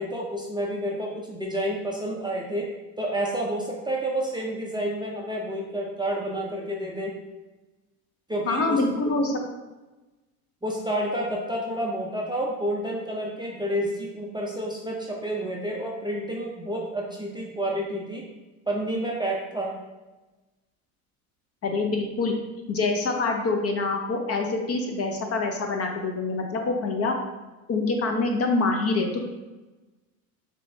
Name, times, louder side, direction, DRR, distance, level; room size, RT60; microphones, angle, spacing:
voice 1, 0.0-2.7 3.0-7.1 8.3-8.8 10.6-18.2 18.7-19.7, right 1 dB, 10° right, -3 dB, 0.5 m, -29 dB
voice 2, 8.5-9.3 21.6-22.3 22.7-27.1 27.7-29.2, left 3 dB, 35° left, 3 dB, 0.6 m, -25 dB
6.0 x 2.2 x 2.7 m, 1.1 s
hypercardioid pair, 80°, 45 cm